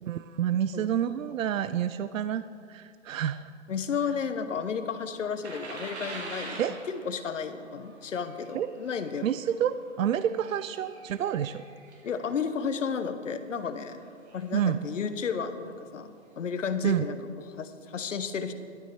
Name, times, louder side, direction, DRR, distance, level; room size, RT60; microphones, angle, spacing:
voice 1, 0.0-2.4 2.7-3.5 6.6-6.7 8.5-8.7 9.2-11.6 14.5-14.8 16.8-17.0, right 9 dB, 80° right, 13 dB, 0.6 m, -28 dB
voice 2, 3.7-6.6 6.9-9.3 12.0-14.0 14.3-18.5, left 6 dB, 70° left, 10 dB, 1.2 m, -33 dB
sound 1, 5.4-12.3 12.9-13.1 13.7-14.5 15.4-15.5 15.9-16.0, right 2 dB, 55° right, 2.9 m, -44 dB
12.5 x 12.5 x 4.7 m, 2.2 s
hypercardioid pair, 165°, 39 cm